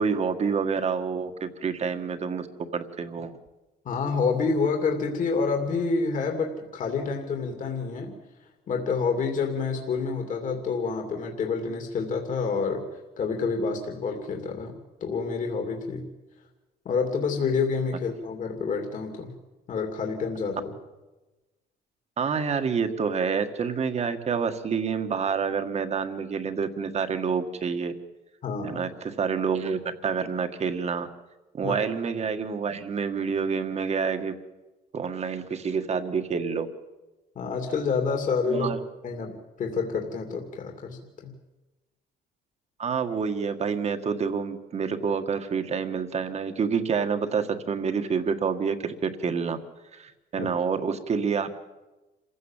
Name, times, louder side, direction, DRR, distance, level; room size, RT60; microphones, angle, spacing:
voice 1, 0.0-2.5 2.7-3.3 22.2-27.9 28.6-31.1 31.5-34.3 34.9-36.7 38.5-38.8 42.8-49.6 49.9-51.6, right 6 dB, 40° right, 8 dB, 1.8 m, -28 dB
voice 2, 3.8-8.2 8.7-16.0 16.8-19.3 19.7-20.7 28.4-28.8 31.6-31.8 37.3-38.7 39.0-41.3 50.4-50.5, left 5 dB, 50° left, 3 dB, 2.7 m, -28 dB
27.0 x 16.0 x 7.4 m, 1.1 s
cardioid pair, 110°, 17 cm